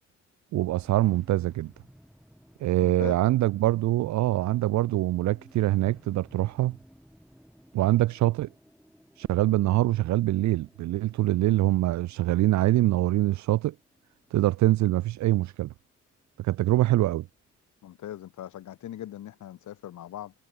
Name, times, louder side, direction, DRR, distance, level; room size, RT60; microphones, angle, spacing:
voice 1, 0.5-1.7 2.6-6.8 7.7-8.5 9.2-13.7 14.3-15.7 16.4-17.3, right 16 dB, 70° right, 0.6 m, -24 dB
sound 1, 0.8-17.2, equal, ahead, 7.7 m, -57 dB
voice 2, 2.8-3.1 17.8-20.3, left 12 dB, 75° left, 4.6 m, -40 dB
cardioid pair, 90°, 30 cm